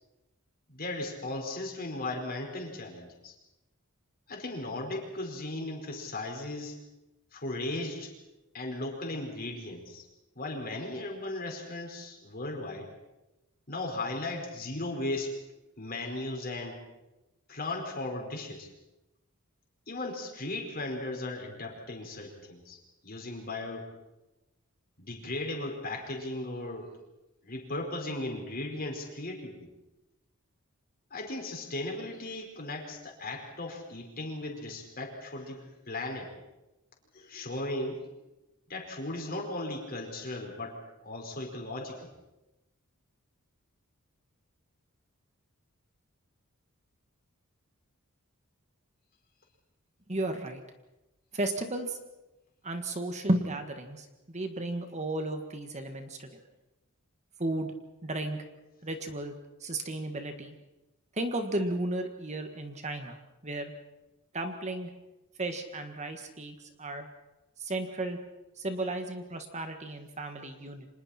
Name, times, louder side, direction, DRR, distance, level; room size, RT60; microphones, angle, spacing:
voice 1, 0.7-3.3 4.3-6.8 7.3-8.1 8.5-10.1 10.3-12.9 13.7-15.3 15.8-16.8 17.5-18.7 19.9-22.8 23.0-23.9 25.0-26.9 27.4-29.7 31.1-36.3 37.1-38.1 38.7-40.8 41.0-42.1 70.4-70.5, left 2 dB, 40° left, 1 dB, 5.0 m, -36 dB
voice 2, 50.1-50.6 51.3-52.0 52.6-56.3 57.4-57.7 58.0-58.4 58.8-60.6 61.2-63.2 63.4-63.7 64.3-64.9 65.4-67.1 67.6-68.2 68.6-70.9, right 1 dB, 30° right, 6 dB, 1.7 m, -34 dB
30.0 x 26.0 x 4.4 m, 0.99 s
head